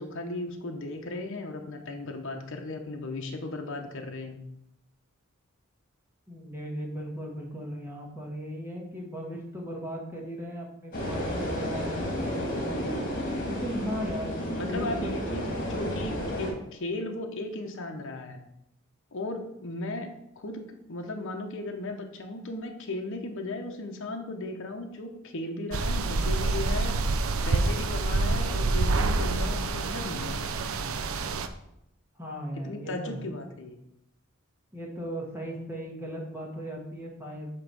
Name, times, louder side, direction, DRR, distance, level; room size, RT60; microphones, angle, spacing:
voice 1, 0.0-4.4 14.5-15.4 15.7-18.4 19.1-20.1 20.4-30.4 32.6-33.8, left 2 dB, 60° left, 3 dB, 0.9 m, -36 dB
voice 2, 6.3-12.8 13.5-15.2 32.2-33.2 34.7-37.5, equal, 10° right, -2 dB, 1.6 m, -37 dB
sound 1, 10.9-16.5, equal, 40° left, 1.8 m, -32 dB
ambience field forest Sergiev Posad, 25.7-31.5, right 3 dB, 70° right, 0.5 m, -27 dB
8.6 x 3.0 x 6.1 m, 0.79 s
head